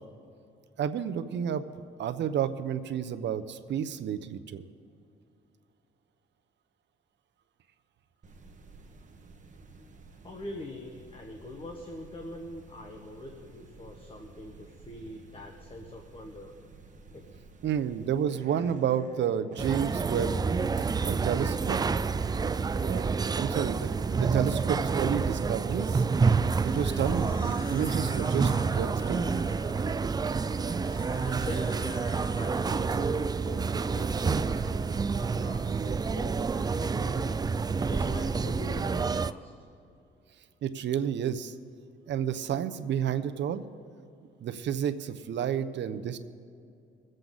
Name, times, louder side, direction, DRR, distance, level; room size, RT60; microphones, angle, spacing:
voice 1, 0.8-1.6 2.0-4.6 17.6-20.4 21.0-21.8 22.8-26.0 26.7-29.5 40.6-41.5 42.1-43.6 44.4-46.2, right 9 dB, 65° right, 10 dB, 0.8 m, -31 dB
sound 1, 8.2-25.6, right 4 dB, 40° right, 1.3 m, -49 dB
voice 2, 10.2-16.5 17.1-17.3 31.2-37.4 37.9-39.5, left 1 dB, 30° left, 2 dB, 1.4 m, -43 dB
sound 2, 19.6-39.3, right 5 dB, 20° right, 0.3 m, -28 dB
sound 3, 26.5-33.4, left 4 dB, 45° left, 1.5 m, -46 dB
22.5 x 7.8 x 4.0 m, 2.5 s
cardioid pair, 90°, 20 cm